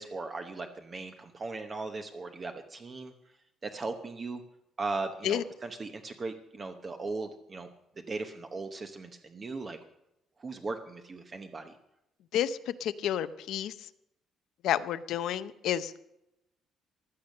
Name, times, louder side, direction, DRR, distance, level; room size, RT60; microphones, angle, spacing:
voice 1, 0.0-3.1 3.6-4.4 4.8-7.7 8.1-9.8 10.4-11.8, right 3 dB, 25° right, 6 dB, 0.9 m, -38 dB
voice 2, 12.3-13.9 14.6-16.0, left 10 dB, 70° left, 13 dB, 0.7 m, -30 dB
15.5 x 12.0 x 6.5 m, 0.84 s
cardioid pair, 155°, 0 cm